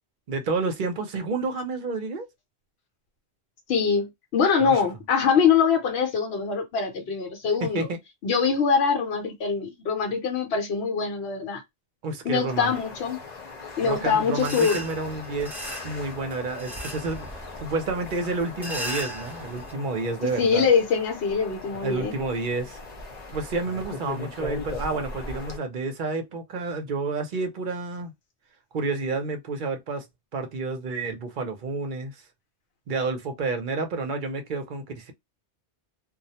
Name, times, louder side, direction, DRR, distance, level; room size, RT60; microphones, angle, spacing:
voice 1, 0.3-2.3 4.6-4.8 7.6-8.0 12.0-12.7 13.8-17.3 17.6-20.7 21.8-22.8 23.3-28.1 28.7-30.1 30.3-32.2 32.9-35.1, right 3 dB, 55° right, 0.7 m, -30 dB
voice 2, 3.7-7.9 8.2-11.6 12.2-13.2 13.8-14.8 20.4-22.1, left 6 dB, 70° left, 0.9 m, -23 dB
sound 1, 12.5-25.6, left 3 dB, 45° left, 0.8 m, -39 dB
sound 2, 14.4-19.7, right 1 dB, ahead, 0.6 m, -37 dB
2.3 x 2.1 x 2.7 m
omnidirectional pair, 1.1 m